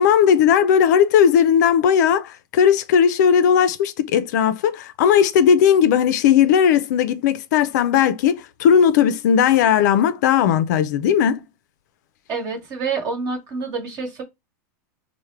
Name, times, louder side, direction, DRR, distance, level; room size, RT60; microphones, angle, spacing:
voice 1, 0.0-11.4, left 8 dB, 60° left, 0.4 m, -17 dB
voice 2, 12.3-14.2, right 4 dB, 35° right, 1.2 m, -27 dB
4.5 x 2.1 x 3.2 m
supercardioid pair, 160°, 11 cm